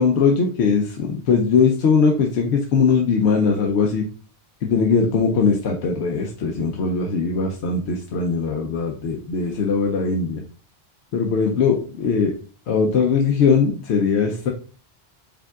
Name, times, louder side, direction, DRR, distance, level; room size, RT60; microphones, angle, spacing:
voice 1, 0.0-4.0 4.6-10.4 11.1-12.3 12.7-14.5, left 5 dB, 90° left, 2 dB, 0.9 m, -20 dB
4.9 x 3.6 x 2.3 m, 0.39 s
omnidirectional pair, 1.1 m